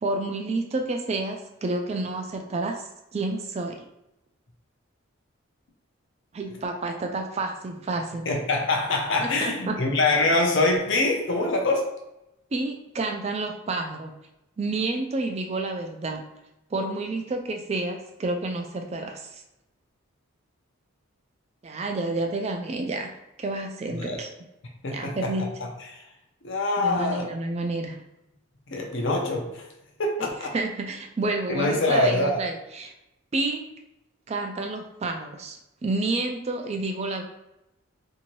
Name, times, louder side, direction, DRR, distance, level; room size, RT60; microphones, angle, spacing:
voice 1, 0.0-3.8 6.3-8.3 9.2-9.8 12.5-14.2 14.6-16.2 16.7-19.4 21.6-23.1 23.4-24.3 24.9-25.4 26.8-28.0 30.2-30.3 30.5-32.9 33.3-33.7 34.3-35.6 35.8-37.2, right 2 dB, 30° right, 4 dB, 0.3 m, -29 dB
voice 2, 8.3-11.8 24.0-24.2 24.8-25.3 25.9-26.0 26.4-27.3 28.7-29.6 30.0-30.5 31.5-32.4, left 2 dB, 55° left, 1 dB, 0.6 m, -24 dB
2.7 x 2.6 x 3.0 m, 0.90 s
head